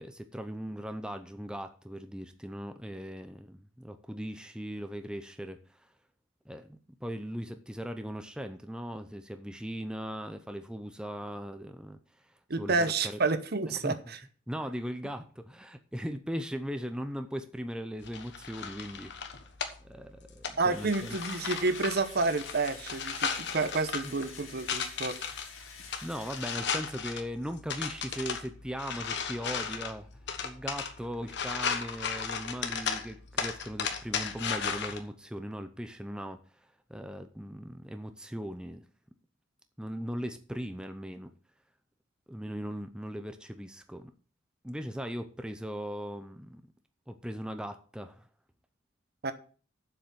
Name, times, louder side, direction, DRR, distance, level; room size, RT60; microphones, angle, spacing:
voice 1, 0.0-5.9 6.5-13.2 13.7-14.0 14.5-19.1 19.8-21.2 24.0-24.1 26.0-38.8 39.8-41.3 42.3-44.1 44.6-46.6 47.1-48.3, equal, 5° right, 0.6 m, -39 dB
voice 2, 12.5-14.2 20.6-25.2 49.2-49.3, right 3 dB, 55° right, 1.0 m, -29 dB
sound 1, 18.0-35.0, left 6 dB, 60° left, 1.3 m, -36 dB
Engine / Drill, 20.7-27.3, left 5 dB, 90° left, 2.4 m, -48 dB
7.6 x 7.0 x 7.0 m
head